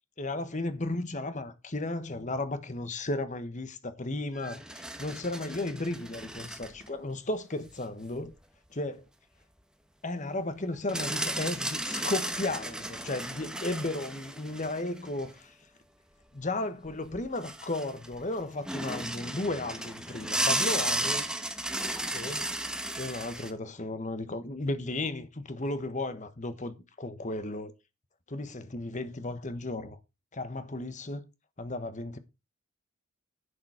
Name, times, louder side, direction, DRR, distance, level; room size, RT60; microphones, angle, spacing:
voice 1, 0.2-8.3 8.7-9.0 10.0-15.5 16.3-21.3 22.1-22.5 23.0-27.7 28.3-30.0 30.3-31.2 31.6-32.2, left 2 dB, 35° left, 1.4 m, -34 dB
sound 1, 4.4-6.9 7.5-7.6 10.9-15.3 16.9-17.0 17.1-18.2 18.7-23.5, right 1 dB, 5° right, 1.2 m, -34 dB
11.0 x 7.1 x 5.0 m
head